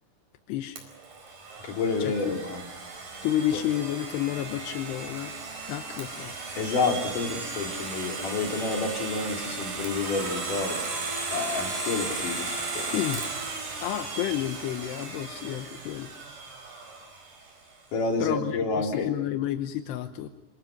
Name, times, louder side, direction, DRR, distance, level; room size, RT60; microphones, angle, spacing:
voice 1, 0.5-0.8 2.0-2.4 3.2-5.3 5.7-6.4 12.9-13.2 13.8-16.1 18.2-20.3, left 12 dB, 85° left, 7 dB, 3.1 m, -30 dB
Domestic sounds home sounds, 0.8-17.5, right 3 dB, 55° right, 6.2 m, -36 dB
voice 2, 1.6-2.6 3.5-3.6 6.6-10.8 11.3-12.9 17.9-19.1, left 4 dB, 55° left, 1 dB, 4.6 m, -29 dB
27.0 x 26.5 x 6.0 m, 0.99 s
omnidirectional pair, 4.7 m